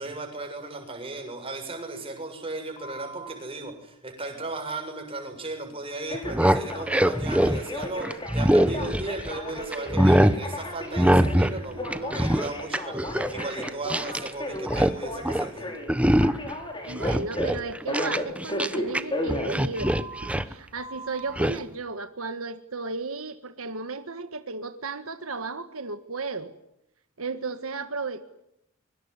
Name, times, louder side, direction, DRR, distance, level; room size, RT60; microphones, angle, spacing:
voice 1, 0.0-15.7, right 2 dB, 25° right, 4 dB, 7.2 m, -36 dB
Telephone, 2.8-3.3 6.1-20.3 20.8-21.3, left 1 dB, 25° left, 6.0 m, -35 dB
sound 1, 6.1-9.4 9.7-10.4 11.0-11.6 11.8-14.3 14.5-15.0 15.2-15.5 15.9-16.5 16.9-19.0 19.3-20.5 21.4-21.6, equal, 5° right, 1.0 m, -23 dB
voice 2, 16.8-26.5 27.2-28.2, right 4 dB, 80° right, 9 dB, 1.6 m, -34 dB
24.5 x 24.0 x 9.8 m, 0.82 s
head